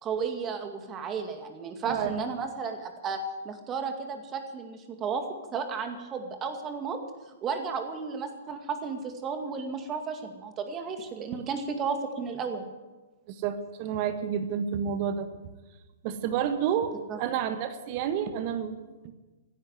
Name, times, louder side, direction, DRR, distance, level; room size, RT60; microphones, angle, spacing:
voice 1, 0.0-5.2 5.5-7.0 7.4-12.6 17.1-17.2, right 5 dB, 25° right, 6 dB, 2.1 m, -33 dB
voice 2, 1.8-2.2 11.3-11.4 13.3-15.3 16.0-19.1, right 8 dB, 40° right, 10 dB, 1.5 m, -30 dB
16.0 x 11.0 x 8.1 m, 1.2 s
figure-of-eight pair, 115°, 0 cm